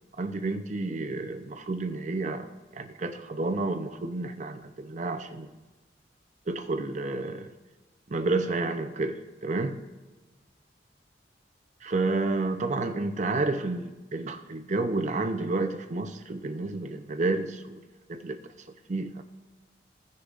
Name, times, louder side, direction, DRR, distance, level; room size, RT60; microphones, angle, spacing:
voice 1, 0.2-2.5 2.7-5.5 6.5-7.5 8.1-9.8 11.8-17.8 18.1-18.4 18.9-19.2, right 3 dB, 40° right, 0.6 m, -30 dB
16.5 x 6.6 x 2.5 m
head